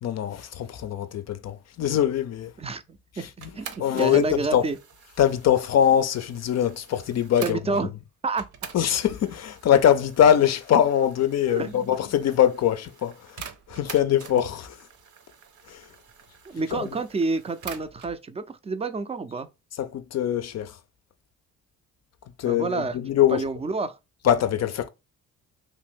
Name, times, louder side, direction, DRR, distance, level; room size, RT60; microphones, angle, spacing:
voice 1, 0.0-2.5 3.2-3.5 3.8-4.6 5.2-7.8 8.7-13.4 13.7-14.8 15.7-15.9 16.7-16.9 19.8-20.8 22.4-23.4 24.2-24.9, left 10 dB, 50° left, 0.5 m, -23 dB
voice 2, 2.6-3.3 3.6-4.8 7.4-7.9 8.2-8.5 11.5-11.9 16.5-19.5 22.5-23.0 23.3-24.0, right 3 dB, 20° right, 0.4 m, -29 dB
sound 1, 3.4-7.9 8.4-18.2, right 7 dB, 60° right, 0.8 m, -46 dB
2.9 x 2.5 x 3.5 m
supercardioid pair, 75°, 34 cm